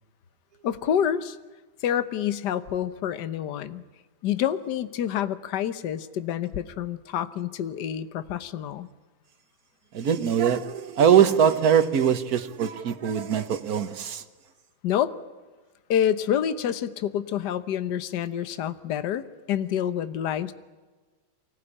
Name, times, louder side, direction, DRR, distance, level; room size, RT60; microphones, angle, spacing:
voice 1, 0.6-1.4 1.8-3.8 4.2-8.9 14.8-15.1 15.9-20.5, left 10 dB, 60° left, 12 dB, 1.6 m, -27 dB
voice 2, 9.9-14.2, right 8 dB, 50° right, 9 dB, 1.7 m, -22 dB
24.5 x 19.0 x 10.0 m, 1.3 s
omnidirectional pair, 2.1 m